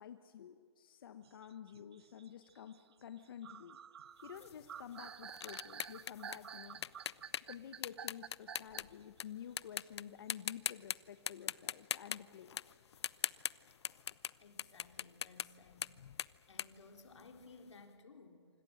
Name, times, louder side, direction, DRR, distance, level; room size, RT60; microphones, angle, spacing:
voice 1, 0.0-3.8 4.2-6.8 7.5-12.6, left 9 dB, 50° left, 9 dB, 1.1 m, -51 dB
sound 1, 1.2-9.0, right 8 dB, 65° right, 0.9 m, -51 dB
sound 2, 4.4-9.2 9.6-10.0 10.3-11.0 11.3-14.3 14.6-17.6, left 8 dB, 70° left, 0.6 m, -41 dB
voice 2, 14.4-15.9 16.5-18.5, left 3 dB, 85° left, 5 dB, 3.9 m, -58 dB
27.0 x 25.5 x 6.4 m, 2.3 s
hypercardioid pair, 165°, 15 cm